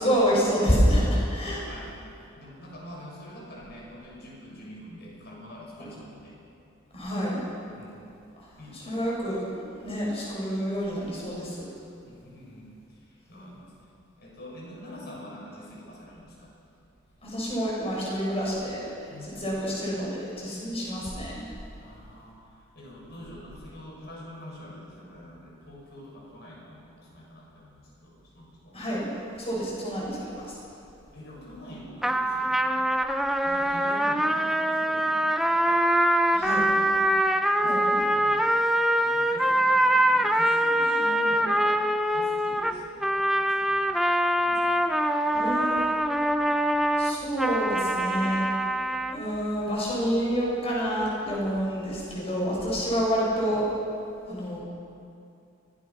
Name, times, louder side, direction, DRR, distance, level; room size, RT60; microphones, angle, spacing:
voice 1, 0.0-1.6 6.9-7.4 8.4-11.7 13.3-13.4 17.2-21.5 28.7-30.6 36.3-36.7 37.6-38.0 45.3-45.9 46.9-48.4 49.1-53.7 54.2-54.6, equal, 30° left, -5 dB, 7.0 m, -28 dB
voice 2, 1.7-2.0 2.3-6.4 7.8-8.0 8.6-8.9 12.1-13.7 14.2-16.5 19.1-19.5 21.7-28.8 31.1-32.6 33.4-35.8 36.3-36.9 37.6-38.5 39.0-41.8 42.1-43.8 44.4-44.9, equal, 55° left, -3 dB, 6.7 m, -45 dB
sound 1, 32.0-49.2, right 1 dB, ahead, 0.6 m, -24 dB
23.5 x 18.5 x 6.0 m, 2.6 s
head